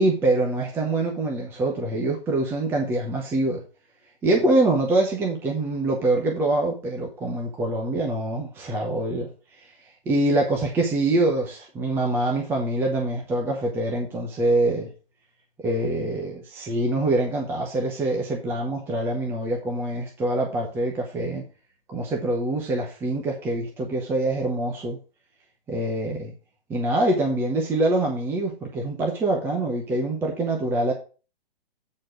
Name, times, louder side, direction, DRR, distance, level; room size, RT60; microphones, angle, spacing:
voice 1, 0.0-3.6 4.2-9.3 10.1-14.9 15.6-21.4 21.9-25.0 25.7-26.3 26.7-30.9, right 2 dB, 10° right, 0.8 m, -24 dB
8.6 x 4.3 x 4.8 m
hypercardioid pair, 155°, 30 cm